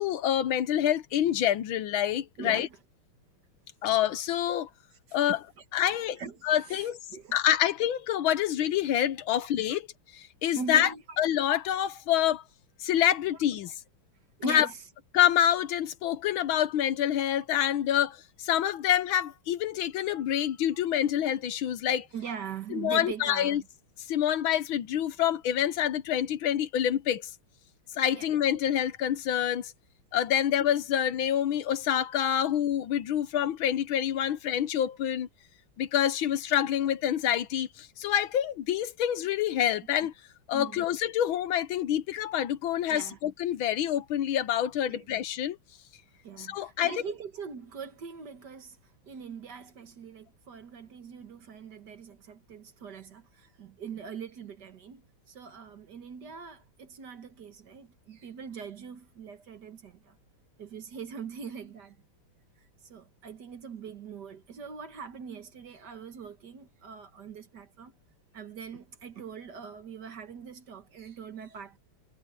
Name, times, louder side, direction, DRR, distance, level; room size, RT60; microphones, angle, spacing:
voice 1, 0.0-2.7 3.8-4.7 5.1-5.4 5.7-7.0 7.3-9.9 10.1-10.9 11.2-12.4 12.8-13.7 14.4-14.7 15.1-22.1 22.7-23.6 24.1-27.3 28.0-29.7 30.1-35.3 35.8-40.1 40.5-45.6 46.4-47.0, left 10 dB, 70° left, 1.5 m, -27 dB
voice 2, 2.4-2.8 5.3-5.4 6.2-7.4 9.3-9.8 10.5-11.0 14.4-14.8 22.1-23.7 28.1-28.3 40.5-40.8 42.9-43.2 44.9-45.1 46.2-48.8 49.0-60.2 60.6-62.0 62.8-67.9 68.3-71.8, right 6 dB, 55° right, 1.9 m, -42 dB
omnidirectional pair, 2.4 m